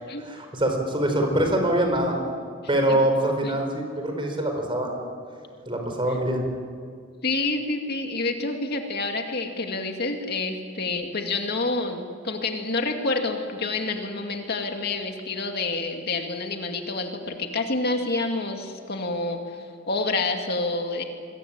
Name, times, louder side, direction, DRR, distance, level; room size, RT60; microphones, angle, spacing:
voice 1, 0.2-2.2 2.7-5.0 5.7-6.5, right 1 dB, 25° right, 3 dB, 5.0 m, -24 dB
voice 2, 7.2-21.0, left 3 dB, 55° left, 4 dB, 2.4 m, -28 dB
27.0 x 22.5 x 8.9 m, 2.1 s
head